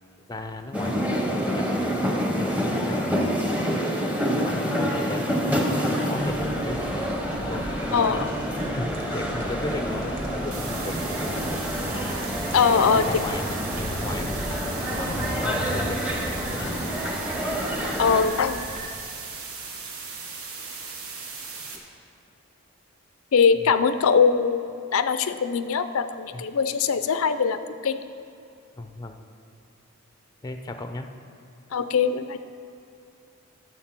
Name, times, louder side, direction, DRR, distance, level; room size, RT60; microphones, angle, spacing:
voice 1, 0.3-1.7 2.4-3.6 3.9-5.7 6.0-8.3 8.7-11.7 12.7-16.8 21.7-21.8 26.3-26.4 28.8-29.2 30.4-31.1, left 2 dB, 15° left, 6 dB, 0.5 m, -36 dB
sound 1, 0.7-18.2, equal, 5° right, 0.9 m, -28 dB
sound 2, 6.2-18.9, right 1 dB, 40° right, 0.9 m, -36 dB
voice 2, 7.9-8.3 12.5-13.0 18.0-18.6 23.3-24.6 24.9-28.0 31.7-32.4, left 6 dB, 75° left, 11 dB, 0.5 m, -21 dB
sound 3, 10.5-21.8, right 4 dB, 75° right, 1.4 m, -38 dB
11.5 x 6.6 x 6.0 m, 2.7 s
head